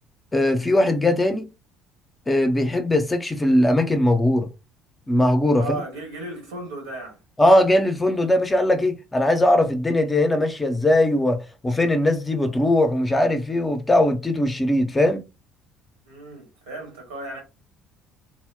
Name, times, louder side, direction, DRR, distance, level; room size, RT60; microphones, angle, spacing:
voice 1, 0.3-1.5 2.3-4.5 5.1-5.8 7.4-15.2, left 1 dB, 15° left, 0.6 m, -20 dB
voice 2, 5.6-7.2 16.0-17.4, right 2 dB, 75° right, 1.2 m, -35 dB
2.1 x 2.1 x 3.5 m
figure-of-eight pair, 55°, 0 cm